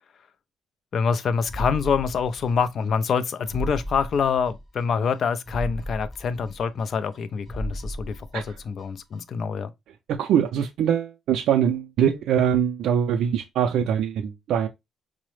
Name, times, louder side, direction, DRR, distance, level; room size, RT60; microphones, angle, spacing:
voice 1, 0.9-9.7, left 6 dB, 45° left, 0.4 m, -26 dB
sound 1, 1.5-2.8 3.1-3.2 3.5-4.8 5.1-5.2 5.5-7.2 7.5-8.8 9.1-9.2, equal, 10° left, 0.8 m, -35 dB
voice 2, 10.1-14.7, right 9 dB, 75° right, 0.3 m, -23 dB
4.6 x 2.0 x 3.0 m
cardioid pair, 155°, 0 cm